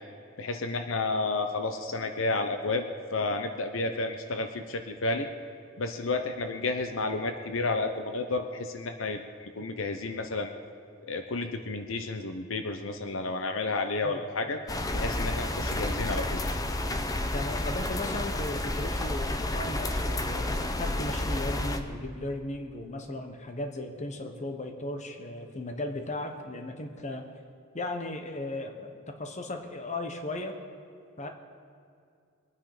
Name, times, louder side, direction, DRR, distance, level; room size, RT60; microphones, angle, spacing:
voice 1, 0.4-2.8 3.1-5.3 5.8-10.5 11.0-14.6 14.9-16.4, left 3 dB, 80° left, 7 dB, 0.9 m, -31 dB
sound 1, 14.7-21.8, left 1 dB, 20° left, 0.8 m, -30 dB
voice 2, 17.3-27.3 27.7-30.6 31.2-31.3, left 2 dB, 35° left, 5 dB, 1.3 m, -36 dB
23.0 x 9.4 x 5.0 m, 2.4 s
head